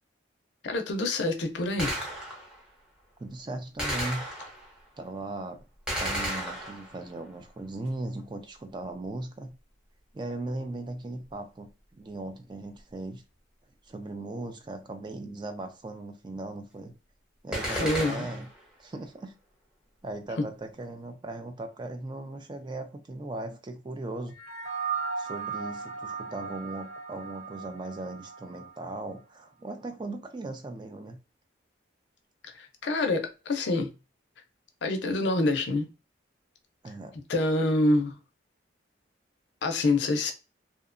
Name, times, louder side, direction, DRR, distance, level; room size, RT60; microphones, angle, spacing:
voice 1, 0.6-1.9 17.6-18.3 32.6-33.9 34.8-35.9 37.3-38.2 39.6-40.3, left 2 dB, 65° left, 0.5 m, -26 dB
Gunshot gunfire, 1.8-2.6 3.8-4.8 5.9-7.1 17.5-18.6, equal, 5° right, 0.7 m, -33 dB
voice 2, 3.2-4.2 5.0-5.6 6.0-9.5 10.1-13.2 13.8-16.9 17.4-18.5 18.8-19.3 20.0-24.3 25.2-31.2 36.8-37.1, right 2 dB, 25° right, 0.3 m, -38 dB
sound 1, 24.3-29.0, right 5 dB, 50° right, 0.9 m, -36 dB
2.7 x 2.1 x 2.4 m
head